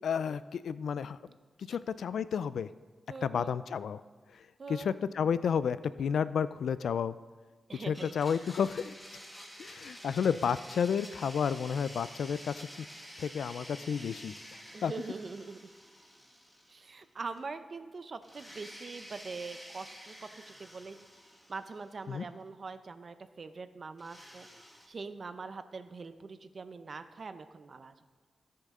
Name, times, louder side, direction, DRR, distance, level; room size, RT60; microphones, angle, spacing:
voice 1, 0.0-1.2 1.7-2.7 3.2-4.0 4.3-7.1 7.9-8.9 9.6-12.9 13.2-14.3 14.8-14.9 22.1-22.2, left 7 dB, 85° left, 15 dB, 0.3 m, -31 dB
voice 2, 3.1-3.5 4.6-4.9 7.7-8.2 14.7-15.6 16.7-21.0 21.5-24.5 24.9-27.9, right 4 dB, 50° right, 10 dB, 0.6 m, -43 dB
Domestic sounds home sounds, 7.9-17.1 17.4-17.5 18.2-22.2 24.0-24.9, equal, 5° left, 1.7 m, -50 dB
17.0 x 6.7 x 3.7 m, 1.4 s
wide cardioid pair, 95°, 0 cm